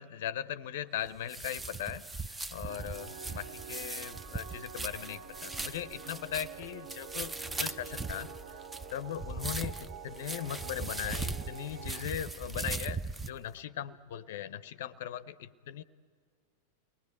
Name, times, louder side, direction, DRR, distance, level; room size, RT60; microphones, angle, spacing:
voice 1, 0.0-8.6 8.9-15.8, left 10 dB, 55° left, 16 dB, 0.6 m, -39 dB
sound 1, 1.1-13.3, right 3 dB, 10° right, 0.6 m, -39 dB
sound 2, 2.7-12.0, right 7 dB, 45° right, 0.7 m, -48 dB
sound 3, 5.0-13.6, left 8 dB, 15° left, 1.0 m, -60 dB
30.0 x 20.0 x 9.8 m, 2.1 s
figure-of-eight pair, 90°, 0 cm